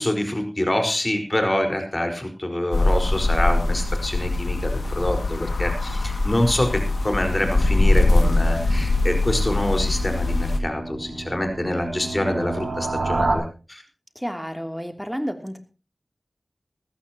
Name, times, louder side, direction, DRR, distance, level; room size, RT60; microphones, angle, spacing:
voice 1, 0.0-13.8, left 1 dB, 30° left, 4 dB, 4.8 m, -26 dB
sound 1, 2.7-10.6, left 2 dB, 90° left, 2.1 m, -22 dB
sound 2, 7.8-13.4, right 3 dB, 75° right, 4.3 m, -31 dB
voice 2, 14.1-15.6, equal, ahead, 6 dB, 3.0 m, -30 dB
20.0 x 14.5 x 3.0 m, 0.33 s
wide cardioid pair, 45°, 0 cm